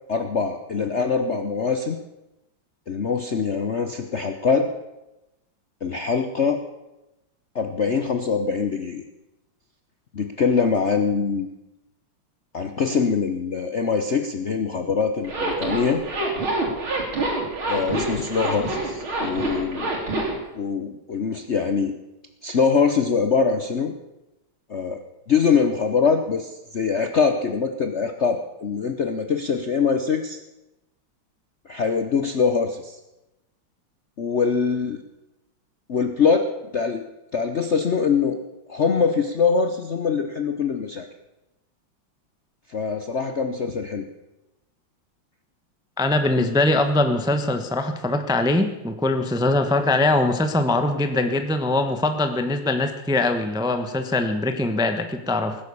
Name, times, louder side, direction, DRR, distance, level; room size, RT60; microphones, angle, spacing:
voice 1, 0.1-2.0 2.9-4.7 5.8-6.6 7.5-9.0 10.1-11.5 12.5-16.0 17.7-19.9 20.5-22.0 22.4-23.9 24.7-25.0 25.3-30.4 31.7-33.0 34.2-35.0 35.9-37.0 37.3-38.4 38.7-41.1 42.7-44.1, left 5 dB, 50° left, 6 dB, 0.8 m, -23 dB
Zipper (clothing), 15.2-20.4, right 2 dB, 75° right, 4.1 m, -26 dB
voice 2, 46.0-55.6, left 2 dB, 5° right, 7 dB, 0.6 m, -22 dB
18.5 x 10.5 x 7.1 m, 0.96 s
omnidirectional pair, 2.3 m